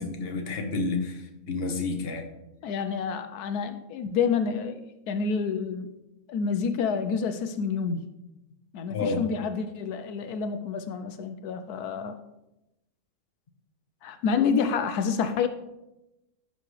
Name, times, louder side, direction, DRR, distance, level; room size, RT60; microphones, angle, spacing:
voice 1, 0.0-2.2 8.9-9.2, left 3 dB, 40° left, 4 dB, 1.2 m, -30 dB
voice 2, 2.6-4.8 5.1-5.9 6.3-8.0 8.7-12.2 14.0-15.5, left 6 dB, 85° left, 9 dB, 1.2 m, -28 dB
15.5 x 5.7 x 3.2 m, 0.94 s
omnidirectional pair, 1.6 m